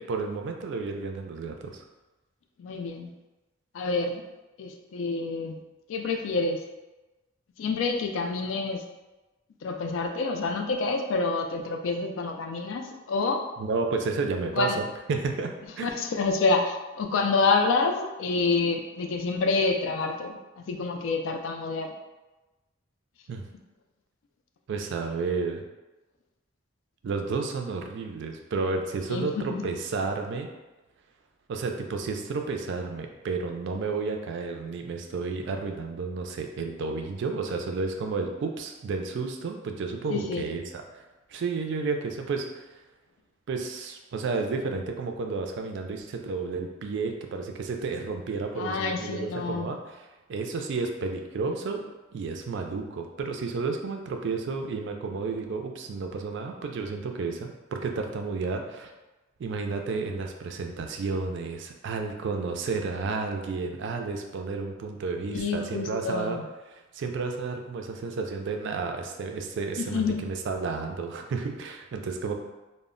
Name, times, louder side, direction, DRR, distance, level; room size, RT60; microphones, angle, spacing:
voice 1, 0.0-1.8 13.6-15.5 15.8-15.9 23.3-23.4 24.7-25.6 27.0-30.5 31.5-41.0 41.3-42.7 43.5-51.8 52.1-58.9 59.4-66.4 66.7-72.3, right 4 dB, 65° right, 4 dB, 0.3 m, -31 dB
voice 2, 2.6-3.1 3.7-4.2 4.6-5.6 5.9-6.6 7.6-8.8 9.6-13.4 14.5-14.8 15.8-21.9 29.1-29.6 40.1-40.5 48.6-49.7 65.3-66.4 69.8-70.3, left 3 dB, 70° left, 4 dB, 0.3 m, -28 dB
2.0 x 2.0 x 3.6 m, 1.1 s
head